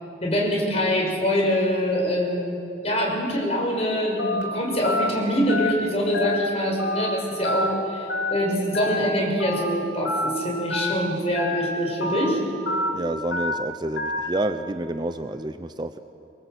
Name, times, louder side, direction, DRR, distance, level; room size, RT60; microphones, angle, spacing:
voice 1, 0.2-2.6 2.8-12.4, equal, 35° left, -1 dB, 6.2 m, -24 dB
Telephone, 4.2-4.4 4.8-5.1 5.5-5.7 6.1-6.4 6.8-7.0 7.4-7.7 8.1-8.3 8.7-9.0 9.4-9.6 10.0-10.3 10.7-10.9 11.3-11.6 12.0-12.2 12.7-12.9 13.3-13.5 14.0-14.2, left 2 dB, 75° left, 4.1 m, -26 dB
voice 2, 12.9-16.0, right 1 dB, 25° right, 9 dB, 0.6 m, -29 dB
25.5 x 22.0 x 8.2 m, 3.0 s
head